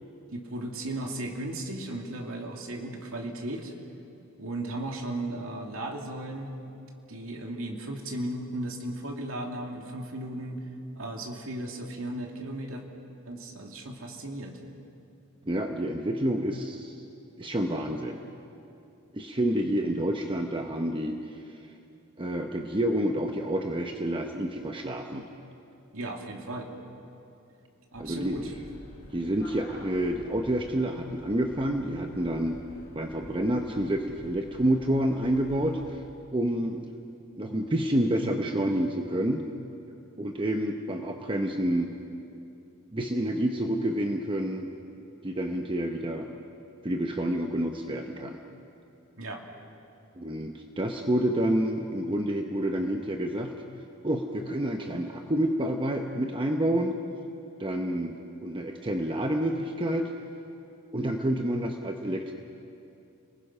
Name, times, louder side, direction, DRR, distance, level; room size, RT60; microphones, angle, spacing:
voice 1, 0.3-3.7 4.4-6.6 7.1-10.7 10.9-12.8 13.3-14.6 25.9-26.7 27.9-28.5 49.2-49.4, right 1 dB, 80° right, 1 dB, 2.4 m, -36 dB
voice 2, 15.5-16.9 17.4-18.2 19.1-21.4 22.2-25.3 28.0-28.5 29.1-32.6 32.9-36.0 36.3-36.9 37.4-39.5 40.2-41.9 42.9-44.7 45.2-46.3 46.8-48.4 50.2-53.6 54.0-56.9 57.6-60.1 60.9-62.3, right 1 dB, 25° right, 4 dB, 0.9 m, -28 dB
sound 1, 27.9-36.0, equal, 50° left, 4.5 m, -49 dB
29.5 x 20.5 x 5.6 m, 2.7 s
head